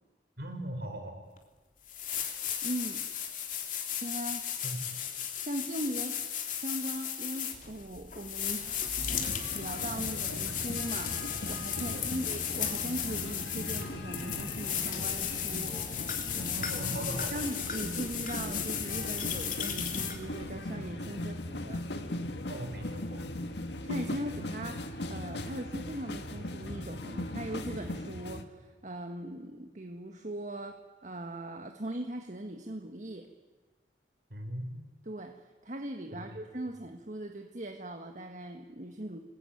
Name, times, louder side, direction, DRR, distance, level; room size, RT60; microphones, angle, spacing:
voice 1, 0.4-1.2 4.6-4.9 11.9-12.2 16.5-17.4 22.5-23.3 34.3-34.7 36.1-36.4, right 1 dB, 60° right, 5 dB, 5.2 m, -39 dB
sound 1, 1.4-1.5 1.9-20.5, left 8 dB, 45° left, 3.1 m, -35 dB
voice 2, 2.6-3.1 4.0-4.5 5.4-9.0 9.5-15.8 17.3-21.8 23.8-33.3 35.0-39.2, right 1 dB, 45° right, 4 dB, 1.6 m, -39 dB
sound 2, 9.1-28.4, left 1 dB, 70° left, 1.8 m, -39 dB
sound 3, 14.1-21.5, equal, 5° right, 3.7 m, -52 dB
27.5 x 21.0 x 9.3 m, 1.3 s
head